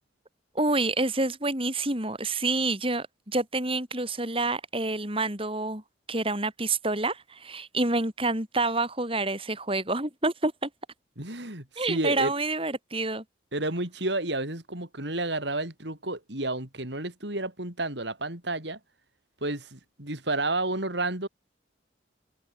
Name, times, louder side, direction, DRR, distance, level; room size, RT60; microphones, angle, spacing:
voice 1, 0.5-5.8 6.1-10.7 11.8-13.2, right 2 dB, 30° right, 5.5 m, -28 dB
voice 2, 11.2-12.3 13.5-18.8 19.4-21.3, right 2 dB, 65° right, 6.0 m, -31 dB
head